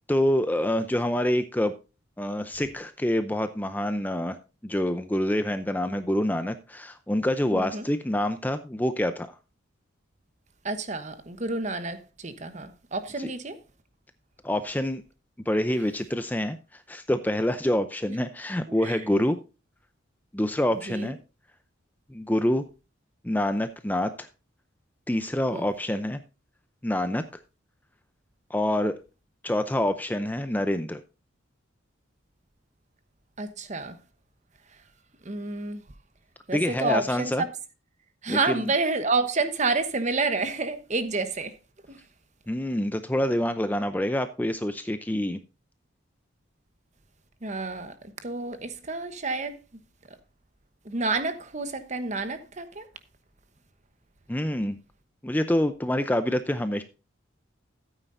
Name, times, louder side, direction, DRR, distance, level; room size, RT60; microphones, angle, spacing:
voice 1, 0.1-1.7 2.2-4.4 4.6-9.4 13.2-13.3 14.4-15.0 15.5-19.4 20.3-21.2 22.1-22.6 23.2-24.3 25.1-26.2 26.8-27.2 28.5-29.0 29.4-31.0 36.5-37.4 38.3-38.7 42.5-45.4 54.3-54.8 55.2-56.8, left 1 dB, 10° left, 0.5 m, -26 dB
voice 2, 7.5-7.9 10.6-13.6 18.7-19.0 20.8-21.1 25.5-25.7 25.9-26.0 33.4-34.0 35.2-35.8 36.5-37.5 38.2-41.6 41.9-42.0 47.4-49.6 50.8-52.9, right 3 dB, 35° right, 1.0 m, -29 dB
13.5 x 9.0 x 2.6 m
head